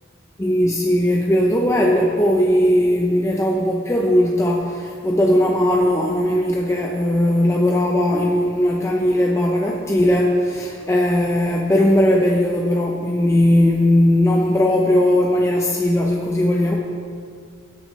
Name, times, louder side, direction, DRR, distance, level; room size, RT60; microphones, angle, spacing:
voice 1, 0.4-16.8, left 1 dB, 15° left, -1 dB, 0.7 m, -18 dB
17.0 x 8.8 x 3.3 m, 2.2 s
head